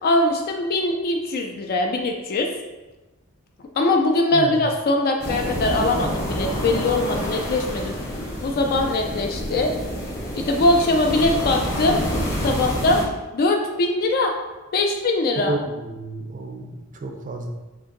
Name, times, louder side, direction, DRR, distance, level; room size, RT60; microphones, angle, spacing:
voice 1, 0.0-2.5 3.8-7.9 8.4-9.7 10.3-12.0 12.4-13.0 13.3-14.3 14.7-15.5, left 2 dB, 45° left, 3 dB, 0.3 m, -21 dB
sound 1, 5.2-13.0, equal, 15° left, 0.7 m, -28 dB
voice 2, 15.4-17.5, right 2 dB, 35° right, 4 dB, 0.4 m, -30 dB
3.7 x 2.5 x 3.8 m, 1.1 s
head